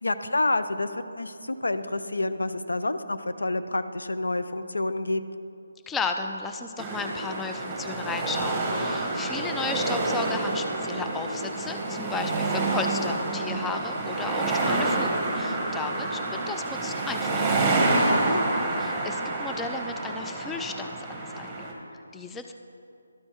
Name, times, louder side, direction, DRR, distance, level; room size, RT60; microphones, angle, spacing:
voice 1, 0.0-5.2 18.1-18.4, left 2 dB, 85° left, 10 dB, 0.4 m, -28 dB
voice 2, 5.9-16.2 16.5-17.6 18.8-21.7 22.1-22.5, left 4 dB, 10° left, 5 dB, 0.3 m, -34 dB
sound 1, 6.8-21.7, right 2 dB, 15° right, 1.1 m, -28 dB
12.5 x 4.4 x 4.4 m, 2.6 s
figure-of-eight pair, 155°, 0 cm